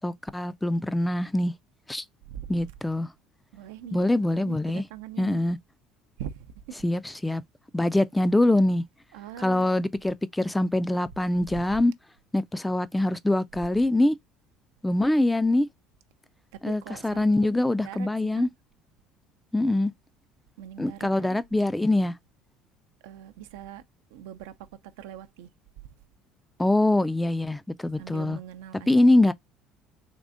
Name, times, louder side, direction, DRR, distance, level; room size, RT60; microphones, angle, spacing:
voice 1, 0.0-1.5 1.9-2.0 2.5-3.1 3.9-4.8 5.2-5.6 6.8-7.4 7.7-8.8 9.4-11.9 12.3-14.2 14.8-15.7 16.6-18.5 19.5-19.9 20.8-22.1 26.6-28.4 28.9-29.3, left 1 dB, 10° left, 0.3 m, -24 dB
voice 2, 2.3-2.6 3.5-4.0 4.3-5.4 6.2-6.4 6.7-6.8 9.1-9.8 11.5-11.6 16.5-18.1 18.4-18.5 20.6-21.4 23.0-23.8 24.1-24.5 25.0-25.5 28.0-29.2, right 10 dB, 80° right, 0.5 m, -42 dB
3.6 x 3.3 x 2.5 m
hypercardioid pair, 75°, 0 cm